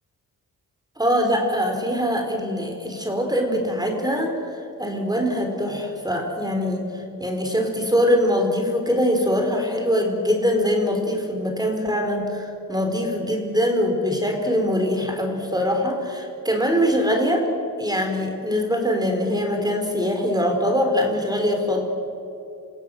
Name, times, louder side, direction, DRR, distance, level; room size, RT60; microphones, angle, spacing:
voice 1, 1.0-4.4 4.8-6.9 7.2-17.5 17.8-21.8, equal, 10° right, 3 dB, 4.4 m, -23 dB
28.5 x 16.0 x 7.9 m, 2.8 s
cardioid pair, 75°, 35 cm